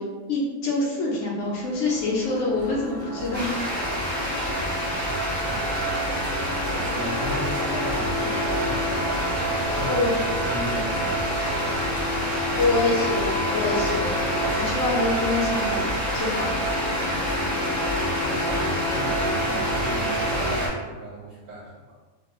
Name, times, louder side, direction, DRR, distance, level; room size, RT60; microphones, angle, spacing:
voice 1, 0.0-3.6 9.8-10.2 12.5-14.2 14.6-16.5, left 2 dB, 65° left, -3 dB, 0.9 m, -26 dB
sound 1, 1.6-20.7, equal, 30° right, 0.7 m, -28 dB
sound 2, 3.3-20.7, equal, 20° left, 0.5 m, -30 dB
voice 2, 5.0-6.3 6.6-9.4 9.7-12.7 18.2-21.9, equal, 65° right, -3 dB, 0.8 m, -37 dB
2.5 x 2.2 x 2.9 m, 1.3 s
omnidirectional pair, 1.4 m